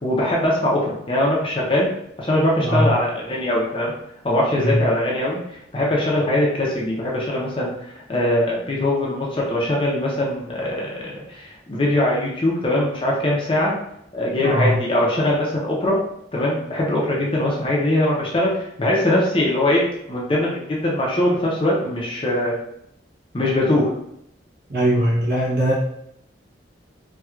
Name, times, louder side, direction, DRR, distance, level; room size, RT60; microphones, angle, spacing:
voice 1, 0.0-1.9 2.2-3.9 4.2-13.7 14.1-16.0 16.3-22.6 23.3-23.9, left 1 dB, 30° left, -4 dB, 0.6 m, -21 dB
voice 2, 14.4-14.7 24.7-25.7, equal, 55° right, -7 dB, 0.8 m, -20 dB
4.3 x 2.2 x 2.4 m, 0.76 s
head